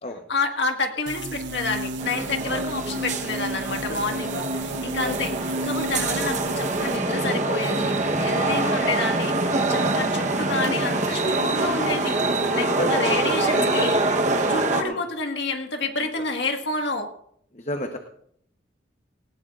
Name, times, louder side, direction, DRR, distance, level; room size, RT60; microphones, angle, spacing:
voice 1, 0.3-5.3 5.6-12.2 12.5-14.0 14.4-17.1, left 3 dB, 70° left, 4 dB, 1.7 m, -29 dB
sound 1, 1.1-7.0, right 2 dB, 80° right, 0.7 m, -32 dB
sound 2, 2.0-14.8, right 2 dB, 40° right, 1.1 m, -25 dB
voice 2, 3.9-4.4 5.0-5.2 8.3-8.6 12.5-14.0 14.8-15.0 17.5-18.0, left 1 dB, 40° left, 4 dB, 1.0 m, -31 dB
19.0 x 17.5 x 2.5 m, 0.68 s
head